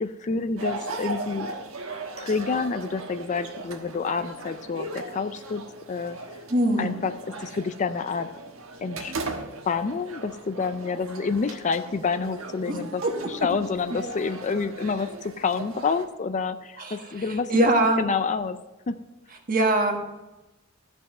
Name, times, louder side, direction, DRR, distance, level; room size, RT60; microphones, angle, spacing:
voice 1, 0.0-1.5 2.2-6.2 6.8-7.1 7.4-8.3 8.8-9.1 9.7-17.7 18.0-18.6 18.9-19.0, left 4 dB, 35° left, 11 dB, 0.4 m, -28 dB
sound 1, 0.6-16.1, right 2 dB, 85° right, 1.2 m, -38 dB
voice 2, 6.5-7.0 12.7-13.1 16.8-17.2 17.5-18.0 19.5-20.0, right 2 dB, 40° right, 3 dB, 1.5 m, -23 dB
13.5 x 5.4 x 6.5 m, 1.0 s
head